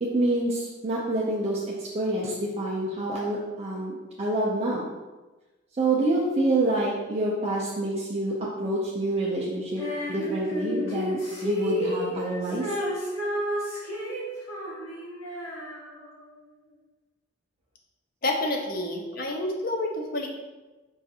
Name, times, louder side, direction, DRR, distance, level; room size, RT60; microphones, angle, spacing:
voice 1, 0.0-4.8 5.8-9.8 10.1-12.7, right 1 dB, 30° right, -5 dB, 0.5 m, -27 dB
Female singing, 9.8-16.3, equal, 90° left, 1.2 m, -32 dB
voice 2, 18.2-20.3, left 1 dB, 45° left, 2 dB, 0.5 m, -28 dB
5.5 x 2.5 x 2.7 m, 1.2 s
head